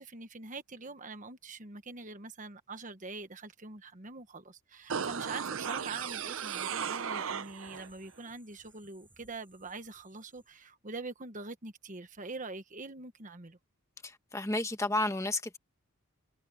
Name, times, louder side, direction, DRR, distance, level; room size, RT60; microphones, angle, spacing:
voice 1, 0.0-13.6, right 3 dB, 35° right, 1.3 m, -44 dB
sound 1, 4.8-10.6, right 3 dB, 10° right, 5.4 m, -61 dB
sound 2, 4.9-7.9 8.2-8.3, right 7 dB, 60° right, 0.6 m, -36 dB
voice 2, 14.0-15.6, left 2 dB, 15° left, 1.3 m, -32 dB
head